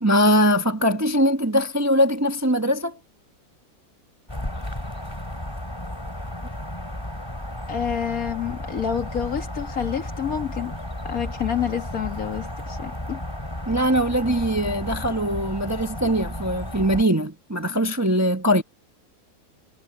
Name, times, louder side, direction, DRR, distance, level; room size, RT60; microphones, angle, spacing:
voice 1, 0.0-3.0 13.7-18.6, equal, 10° right, 1.0 m, -21 dB
sound 1, 4.3-17.0, left 1 dB, 15° left, 3.2 m, -33 dB
voice 2, 7.7-10.7 11.0-13.2, left 8 dB, 60° left, 2.1 m, -28 dB
omnidirectional pair, 1.7 m